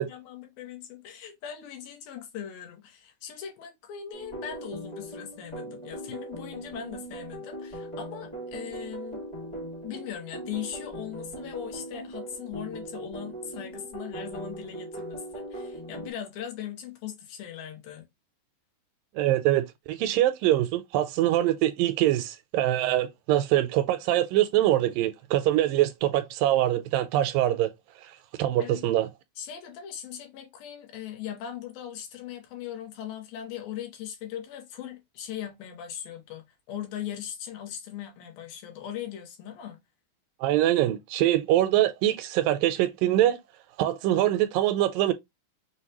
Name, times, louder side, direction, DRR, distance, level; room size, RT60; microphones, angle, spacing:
voice 1, 0.1-9.2 9.8-18.1 28.6-28.9 29.4-39.8, left 10 dB, 85° left, 2.8 m, -39 dB
sound 1, 4.1-16.1, right 1 dB, 25° left, 0.6 m, -39 dB
voice 2, 19.2-27.7 28.4-29.1 40.4-43.4 43.8-45.1, right 13 dB, 80° right, 2.1 m, -24 dB
6.3 x 2.2 x 2.9 m
omnidirectional pair, 4.1 m